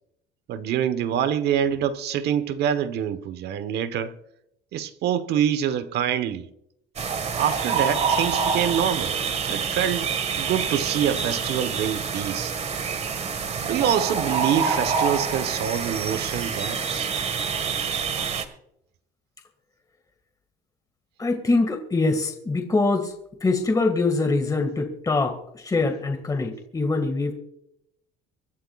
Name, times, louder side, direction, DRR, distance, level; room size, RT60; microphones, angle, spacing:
voice 1, 0.5-4.2 4.7-6.5 7.4-9.2 9.4-10.1 10.4-12.5 13.6-17.1, right 9 dB, 70° right, 1.2 m, -25 dB
sound 1, 7.0-18.4, right 5 dB, 40° right, 1.7 m, -27 dB
voice 2, 21.2-23.1 23.4-27.3, left 3 dB, 20° left, 2.0 m, -24 dB
25.0 x 12.0 x 2.4 m
cardioid pair, 100°, 18 cm